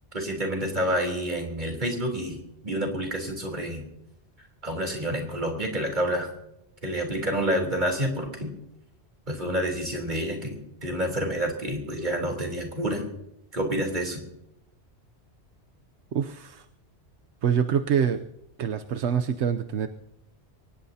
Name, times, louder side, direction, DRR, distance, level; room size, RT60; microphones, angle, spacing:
voice 1, 0.1-3.8 4.6-6.3 6.8-8.5 9.3-13.1 13.5-14.3, equal, 40° right, 2 dB, 3.8 m, -28 dB
voice 2, 16.1-16.6 17.4-18.2 18.6-19.9, right 8 dB, 85° right, 7 dB, 1.0 m, -25 dB
24.0 x 19.0 x 2.8 m, 0.83 s
omnidirectional pair, 1.2 m